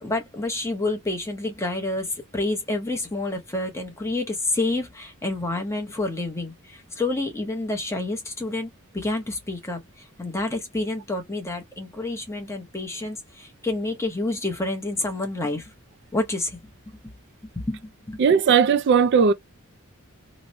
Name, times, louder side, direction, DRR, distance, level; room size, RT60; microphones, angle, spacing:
voice 1, 0.0-15.7 16.1-16.6 17.0-17.1 17.6-18.2, left 2 dB, 10° left, 0.8 m, -29 dB
voice 2, 18.2-19.3, right 6 dB, 50° right, 0.3 m, -17 dB
2.9 x 2.1 x 3.8 m
head